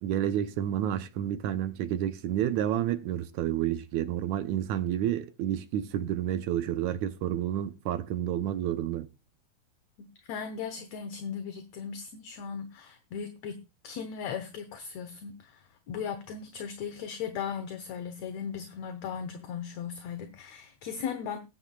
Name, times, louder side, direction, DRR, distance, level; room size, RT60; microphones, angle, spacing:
voice 1, 0.0-9.1, right 11 dB, 70° right, 2.0 m, -30 dB
voice 2, 10.0-21.4, left 7 dB, 65° left, 2.1 m, -37 dB
18.5 x 9.7 x 2.4 m
omnidirectional pair, 3.7 m